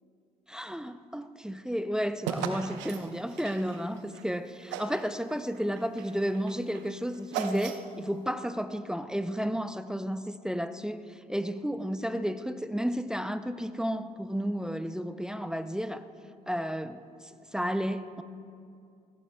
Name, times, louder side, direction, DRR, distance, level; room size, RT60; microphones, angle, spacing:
voice 1, 0.5-16.1 16.5-18.2, equal, 5° right, 0.6 m, -32 dB
sound 1, 2.2-4.3 4.7-5.1 5.5-8.1, right 7 dB, 70° right, 0.9 m, -37 dB
20.5 x 16.5 x 2.3 m
hypercardioid pair, 50°, 20 cm